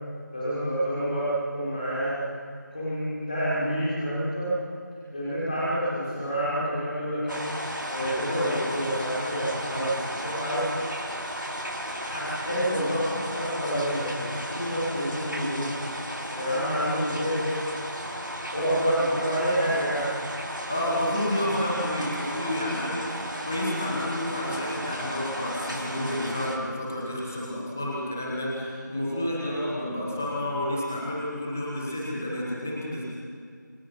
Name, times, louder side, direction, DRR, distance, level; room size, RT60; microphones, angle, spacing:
voice 1, 0.3-2.2 2.7-4.5 5.1-7.5 7.9-10.6 12.0-15.7 16.3-17.7 18.5-20.2, equal, 25° left, -10 dB, 5.8 m, -28 dB
sound 1, 7.3-26.6, equal, 75° right, 4.5 m, -34 dB
voice 2, 20.7-33.0, left 1 dB, 5° left, -4 dB, 1.1 m, -30 dB
27.5 x 22.5 x 5.5 m, 2.2 s
figure-of-eight pair, 175°, 10 cm